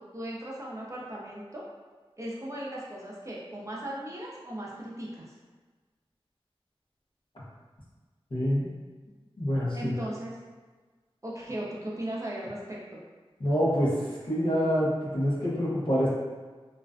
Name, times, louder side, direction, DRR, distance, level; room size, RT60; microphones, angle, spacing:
voice 1, 0.0-1.6 2.2-5.3 9.7-10.3 11.2-13.0, right 1 dB, 30° right, -5 dB, 0.6 m, -37 dB
voice 2, 8.3-8.7 9.4-9.9 13.4-13.9 14.2-16.1, equal, 55° left, -7 dB, 0.8 m, -26 dB
2.4 x 2.1 x 2.4 m, 1.4 s
wide cardioid pair, 50°, 10 cm